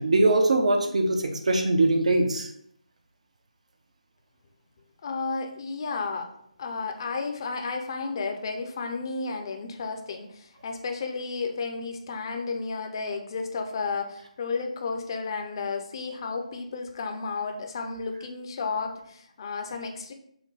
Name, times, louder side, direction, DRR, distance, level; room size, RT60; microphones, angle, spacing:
voice 1, 0.0-2.5, right 2 dB, 65° right, 4 dB, 0.8 m, -22 dB
voice 2, 5.0-6.3 6.6-20.1, left 4 dB, 40° left, 4 dB, 0.6 m, -32 dB
5.8 x 2.2 x 4.1 m, 0.71 s
figure-of-eight pair, 160°, 4 cm